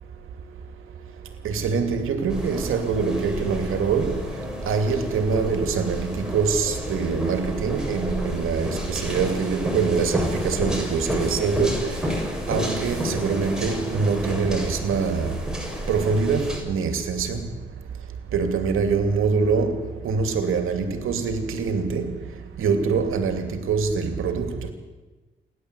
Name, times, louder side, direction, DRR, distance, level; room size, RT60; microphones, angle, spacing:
voice 1, 1.4-4.2 4.7-11.7 12.5-15.4 15.9-17.5 18.3-22.1 22.6-24.5, right 5 dB, 80° right, 2.7 m, -24 dB
sound 1, 2.3-16.6, equal, 5° right, 7.2 m, -30 dB
28.0 x 11.5 x 8.2 m
cardioid pair, 75°, 21 cm